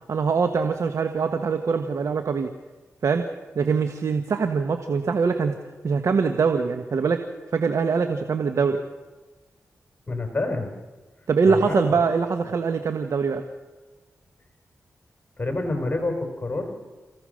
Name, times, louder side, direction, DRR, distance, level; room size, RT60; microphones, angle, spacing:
voice 1, 0.1-2.5 3.0-3.3 3.5-5.6 5.8-7.2 7.5-8.8 11.3-13.4, right 5 dB, 70° right, 6 dB, 1.4 m, -23 dB
voice 2, 10.1-10.7 11.4-12.0 15.4-16.7, left 2 dB, 35° left, 4 dB, 4.4 m, -27 dB
28.0 x 16.0 x 6.5 m, 1.2 s
cardioid pair, 50°, 5 cm